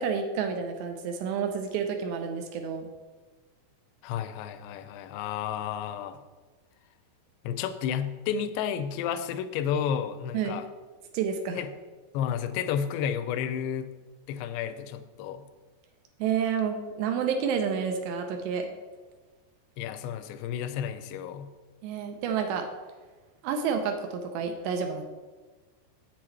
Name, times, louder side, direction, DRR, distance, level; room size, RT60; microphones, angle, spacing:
voice 1, 0.0-2.9 10.3-10.6 11.1-11.6 16.2-18.7 21.8-22.7 23.4-25.0, right 6 dB, 80° right, 5 dB, 2.8 m, -29 dB
voice 2, 4.0-6.2 7.4-10.7 11.6-11.7 12.1-13.9 14.3-15.4 19.8-21.5, left 8 dB, 85° left, 10 dB, 2.6 m, -31 dB
8.4 x 7.5 x 4.6 m, 1.3 s
omnidirectional pair, 5.2 m